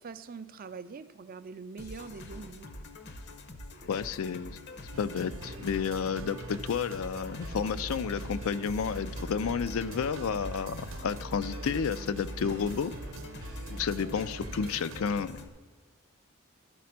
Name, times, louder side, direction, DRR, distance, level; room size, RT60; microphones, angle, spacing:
voice 1, 0.0-2.7, right 5 dB, 45° right, 12 dB, 0.4 m, -43 dB
sound 1, 1.8-15.5, left 2 dB, 55° left, 0.7 m, -46 dB
voice 2, 3.9-4.6 5.0-12.9 13.7-15.4, left 6 dB, 80° left, 14 dB, 0.4 m, -31 dB
sound 2, 4.9-15.0, right 2 dB, 70° right, 0.7 m, -42 dB
12.5 x 4.2 x 5.8 m, 1.5 s
head